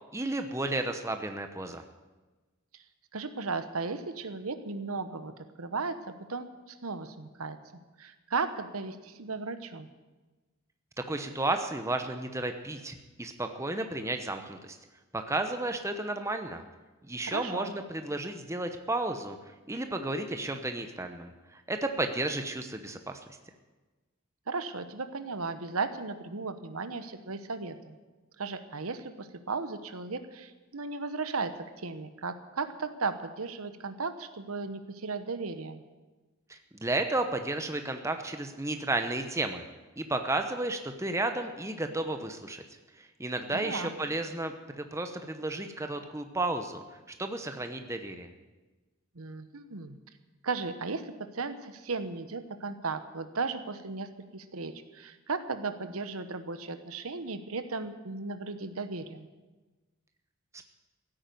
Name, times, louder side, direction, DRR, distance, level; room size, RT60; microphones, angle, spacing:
voice 1, 0.1-1.8 11.0-14.8 15.1-16.6 17.1-19.4 19.7-23.2 36.5-39.6 40.0-42.6 43.0-46.8 47.2-48.3 60.5-60.6, right 2 dB, 15° right, 6 dB, 0.9 m, -33 dB
voice 2, 3.1-5.3 5.6-7.6 8.0-9.9 17.3-17.7 24.5-28.0 28.4-35.8 43.5-43.9 49.1-50.0 50.4-59.3, right 4 dB, 75° right, 10 dB, 1.1 m, -36 dB
15.5 x 8.8 x 9.3 m, 1.2 s
head